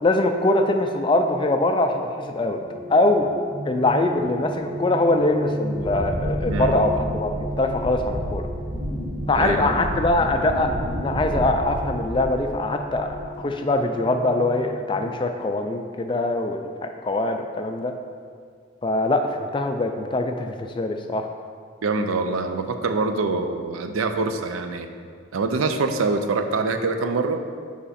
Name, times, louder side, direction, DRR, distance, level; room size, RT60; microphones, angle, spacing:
voice 1, 0.0-2.6 2.9-3.3 3.7-8.5 9.3-16.6 17.0-17.9 18.8-21.3, left 2 dB, 25° left, 5 dB, 0.3 m, -23 dB
sound 1, 2.3-15.1, equal, 20° right, 0.7 m, -34 dB
Wind, 5.7-12.6 12.9-13.4, equal, 60° right, 1.3 m, -31 dB
voice 2, 6.5-6.8 9.3-9.7 21.8-24.9 25.3-27.4, right 3 dB, 90° right, 7 dB, 0.5 m, -25 dB
5.7 x 4.8 x 4.1 m, 2.1 s
head